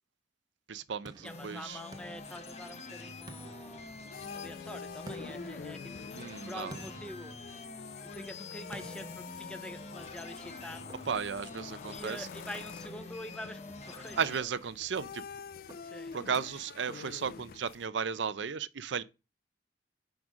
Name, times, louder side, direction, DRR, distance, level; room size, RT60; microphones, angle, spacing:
voice 1, 0.7-1.8 6.1-6.8 11.1-12.3 14.2-15.2 16.1-19.0, right 6 dB, 80° right, 0.6 m, -35 dB
sound 1, 1.1-2.9 3.3-4.4 5.1-8.1 8.7-10.1 10.9-11.5 12.5-13.3 14.1-14.9 15.7-16.4, right 2 dB, 20° right, 0.9 m, -53 dB
sound 2, 1.2-14.4, left 3 dB, 35° left, 1.1 m, -46 dB
voice 2, 1.2-3.9 4.3-7.4 8.0-10.9 11.9-14.4 15.8-16.2, left 1 dB, 5° left, 0.6 m, -46 dB
sound 3, 3.8-17.9, left 6 dB, 55° left, 0.3 m, -47 dB
6.0 x 5.2 x 6.3 m
head